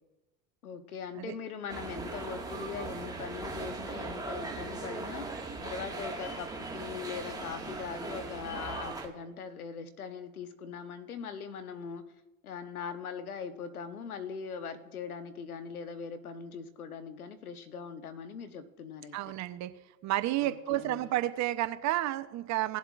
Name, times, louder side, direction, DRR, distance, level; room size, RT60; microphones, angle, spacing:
voice 1, 0.6-5.3 5.6-12.1 12.4-19.3 20.4-21.1, left 6 dB, 90° left, 1.0 m, -41 dB
sound 1, 1.7-9.1, right 3 dB, 10° right, 1.6 m, -39 dB
voice 2, 19.1-19.7 20.0-22.8, right 15 dB, 40° right, 0.7 m, -31 dB
18.0 x 7.3 x 2.4 m
hypercardioid pair, 80°, 42 cm